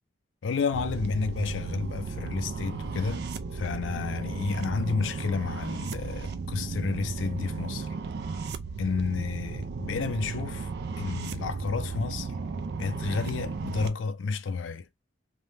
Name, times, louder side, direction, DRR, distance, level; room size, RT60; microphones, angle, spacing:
voice 1, 0.4-7.9 8.8-10.7 11.0-12.3 12.8-14.9, left 4 dB, 90° left, 0.4 m, -31 dB
sound 1, 0.7-13.9, right 4 dB, 60° right, 0.4 m, -35 dB
2.6 x 2.1 x 3.2 m
head